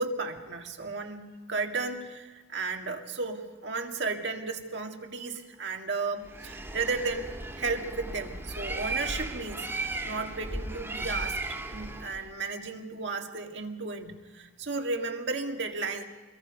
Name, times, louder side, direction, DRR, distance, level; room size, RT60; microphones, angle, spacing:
voice 1, 0.0-11.4 11.7-16.0, right 3 dB, 65° right, 3 dB, 2.0 m, -34 dB
Bird, 6.2-12.3, right 2 dB, 15° right, 1.9 m, -36 dB
25.5 x 22.0 x 5.3 m, 1.3 s
head